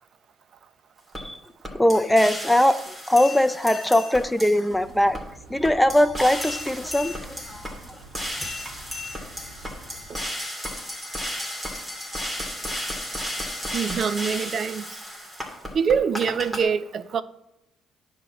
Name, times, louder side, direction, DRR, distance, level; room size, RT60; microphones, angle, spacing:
sound 1, 1.1-1.2 1.6-4.7 5.1-5.2 5.6-16.6, left 1 dB, 15° right, 2.6 m, -34 dB
voice 1, 1.2-5.2 5.5-8.0 8.4-8.5, left 1 dB, 5° left, 0.6 m, -21 dB
sound 2, 4.7-10.2, right 2 dB, 85° right, 2.0 m, -47 dB
voice 2, 13.7-14.8 15.7-17.2, right 6 dB, 50° right, 0.6 m, -24 dB
10.0 x 3.8 x 7.3 m
supercardioid pair, 85°, 0 cm